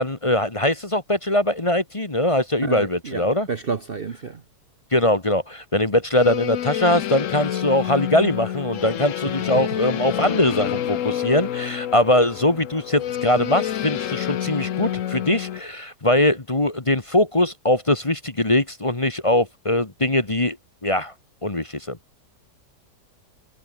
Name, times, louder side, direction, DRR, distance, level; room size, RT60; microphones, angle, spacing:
voice 1, 0.0-3.5 4.9-20.6 20.8-21.1 21.4-22.0, left 1 dB, 20° left, 1.5 m, -21 dB
voice 2, 2.6-4.4, right 5 dB, 40° right, 1.1 m, -30 dB
sound 1, 6.1-15.6, left 10 dB, 60° left, 1.1 m, -28 dB
omnidirectional pair, 1.6 m